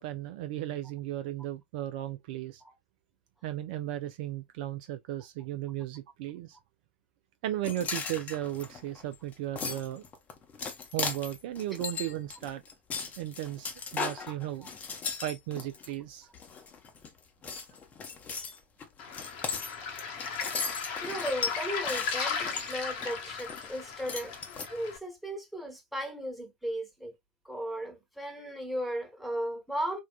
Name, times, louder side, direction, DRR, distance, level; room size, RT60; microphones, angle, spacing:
voice 1, 0.0-2.6 3.4-6.6 7.4-10.0 10.9-12.6 13.2-14.7 15.2-16.3, right 13 dB, 50° right, 0.3 m, -35 dB
sound 1, 7.6-15.9 16.3-17.1 17.4-23.8 24.1-24.7, left 5 dB, 25° left, 0.8 m, -37 dB
Waves surf, 19.0-25.0, left 6 dB, 50° left, 1.0 m, -36 dB
voice 2, 21.0-24.3 24.7-27.1 27.4-30.0, equal, ahead, 1.1 m, -36 dB
3.6 x 2.2 x 2.3 m
figure-of-eight pair, 85°, 6 cm